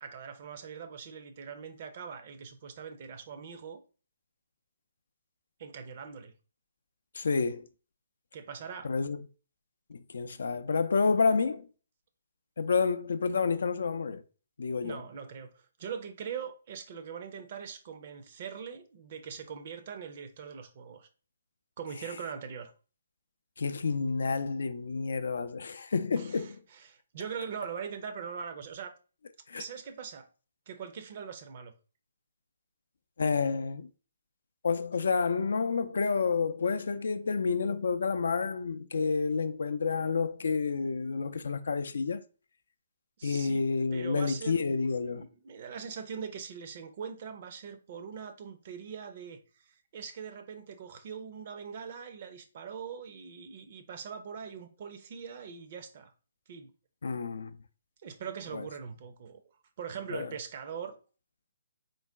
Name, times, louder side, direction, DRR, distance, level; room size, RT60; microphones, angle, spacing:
voice 1, 0.0-3.8 5.6-6.3 8.3-8.9 14.8-21.1 21.8-22.7 26.2-28.9 29.6-30.3 30.7-31.7 43.2-43.6 43.9-56.1 56.5-56.7 58.0-59.4 59.8-61.0, right 7 dB, 45° right, 0.6 m, -42 dB
voice 2, 7.1-7.7 8.8-9.2 9.9-11.7 12.6-14.2 14.6-15.0 23.6-26.6 29.5-29.6 33.2-33.9 34.6-42.2 43.2-45.2 57.0-57.5 58.5-58.6 60.1-60.3, left 4 dB, 65° left, 0.3 m, -29 dB
3.9 x 2.1 x 3.5 m
figure-of-eight pair, 135°, 0 cm